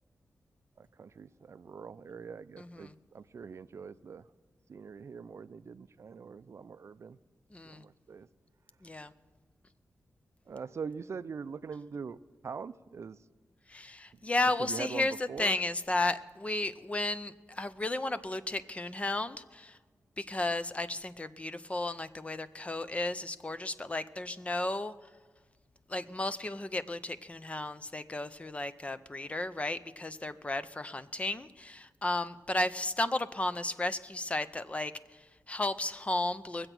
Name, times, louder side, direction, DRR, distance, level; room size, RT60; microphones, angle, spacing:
voice 1, 0.8-4.3 4.7-7.2 7.6-8.3 10.5-12.2 12.4-13.2 14.6-15.6, right 5 dB, 55° right, 13 dB, 0.4 m, -43 dB
voice 2, 2.6-2.9 7.5-7.8 8.8-9.1 13.7-19.8 20.2-24.9 25.9-36.7, left 2 dB, 20° left, 13 dB, 0.5 m, -34 dB
22.0 x 7.9 x 6.0 m, 1.4 s
wide cardioid pair, 150°, 6 cm